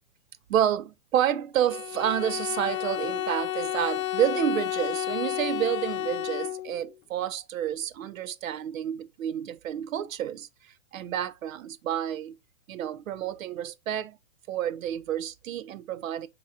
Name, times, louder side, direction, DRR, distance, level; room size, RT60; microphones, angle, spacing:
voice 1, 0.5-12.4 12.7-14.2 14.5-16.3, right 10 dB, 70° right, 0.5 m, -29 dB
Bowed string instrument, 1.7-6.9, left 14 dB, 75° left, 0.5 m, -31 dB
5.2 x 2.9 x 2.3 m
hypercardioid pair, 135°, 42 cm